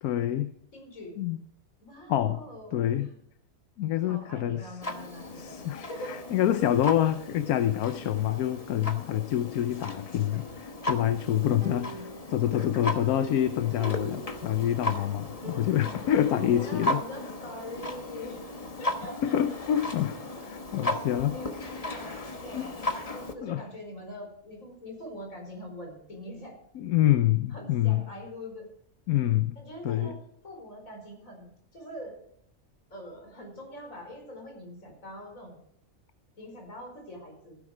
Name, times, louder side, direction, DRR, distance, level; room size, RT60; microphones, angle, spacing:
voice 1, 0.0-0.5 1.2-1.4 2.1-2.4 2.7-3.1 3.8-4.7 5.4-11.9 12.3-17.0 19.2-21.4 22.1-22.3 22.5-22.7 23.4-23.6 26.7-28.1 29.1-29.6 29.8-30.1, left 11 dB, 75° left, 10 dB, 1.2 m, -27 dB
voice 2, 0.7-1.1 1.8-2.8 3.1-3.2 4.0-5.6 5.9-6.1 11.3-12.2 15.4-18.4 18.8-19.6 20.7-22.8 23.1-26.6 27.5-28.6 29.6-30.2 30.4-32.1 32.9-35.6 36.4-37.6, equal, 60° left, 1 dB, 5.3 m, -43 dB
Clock, 4.8-23.3, left 1 dB, 25° left, 1.1 m, -36 dB
sound 1, 9.5-11.3 11.6-14.9 15.2-15.3 15.4-16.0 16.5-18.5 19.0-20.6, right 3 dB, 35° right, 4.2 m, -47 dB
15.5 x 10.0 x 5.0 m, 0.67 s
omnidirectional pair, 1.6 m